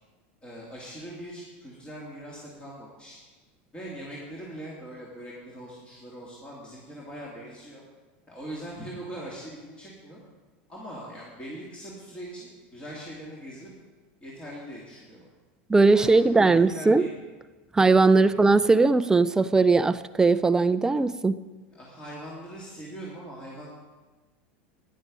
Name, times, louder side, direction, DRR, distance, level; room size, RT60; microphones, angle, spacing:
voice 1, 0.4-3.2 3.7-7.8 8.3-10.2 10.7-13.7 14.2-15.2 15.9-17.1 18.1-18.3 21.7-23.7, right 1 dB, 15° left, -5 dB, 2.7 m, -41 dB
voice 2, 15.7-17.0 17.7-21.4, right 3 dB, 10° right, 13 dB, 0.4 m, -19 dB
12.5 x 10.5 x 5.4 m, 1.2 s
supercardioid pair, 130°, 6 cm